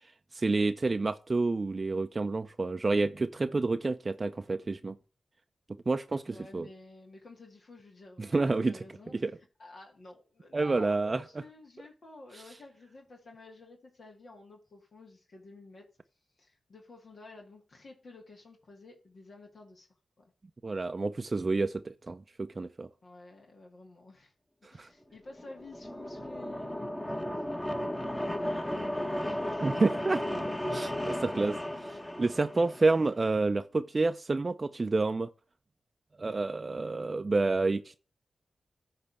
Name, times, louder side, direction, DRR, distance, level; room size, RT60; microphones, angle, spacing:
voice 1, 0.0-5.0 5.9-6.7 8.2-8.8 9.1-9.3 10.5-11.2 12.3-12.4 20.6-22.9 24.6-24.9 29.6-30.2 30.7-31.6 32.2-35.3 36.2-37.9, right 3 dB, 40° right, 0.5 m, -29 dB
voice 2, 6.3-9.3 9.6-15.9 16.4-19.9 20.2-20.3 23.0-24.3 24.7-29.8 31.0-31.8, left 2 dB, 65° left, 2.1 m, -52 dB
sound 1, 25.3-33.2, left 1 dB, 20° left, 1.4 m, -35 dB
9.7 x 3.4 x 6.9 m
cardioid pair, 50°, 0 cm